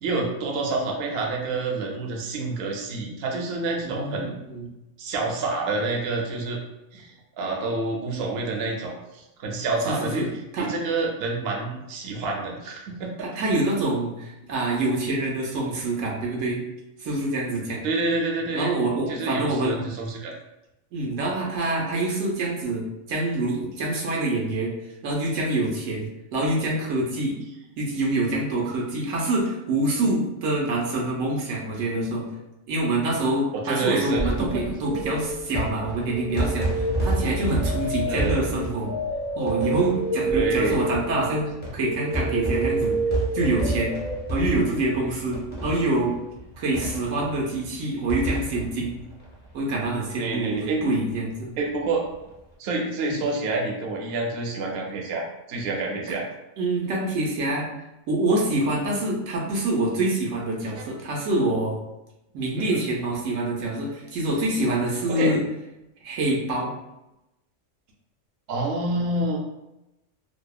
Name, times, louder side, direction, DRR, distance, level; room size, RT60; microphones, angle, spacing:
voice 1, 0.0-4.3 5.0-6.6 6.9-10.3 10.6-13.5 17.8-18.7 19.1-20.3 33.5-34.8 38.1-38.4 40.3-40.8 50.2-50.8 51.6-52.0 52.6-56.2 60.8-60.9 62.6-62.8 65.1-65.3 68.5-69.4, right 3 dB, 65° right, 0 dB, 0.7 m, -28 dB
voice 2, 3.8-4.7 9.9-10.3 10.5-10.7 13.2-16.6 17.0-17.8 18.5-19.8 20.9-24.7 25.0-27.4 27.8-32.3 32.7-38.9 39.3-43.0 43.3-43.9 44.3-46.2 46.6-48.9 49.5-51.6 53.1-53.2 56.1-56.2 56.6-57.7 58.1-61.8 62.3-65.4 66.0-66.7, right 2 dB, 85° right, -2 dB, 1.0 m, -26 dB
sound 1, 34.0-50.1 50.4-50.5 50.7-50.8 52.0-52.3, right 1 dB, 10° left, 0.5 m, -31 dB
sound 2, 34.9-35.6 36.1-44.2, right 2 dB, 55° left, 0.6 m, -29 dB
2.7 x 2.0 x 2.3 m, 0.93 s
omnidirectional pair, 1.3 m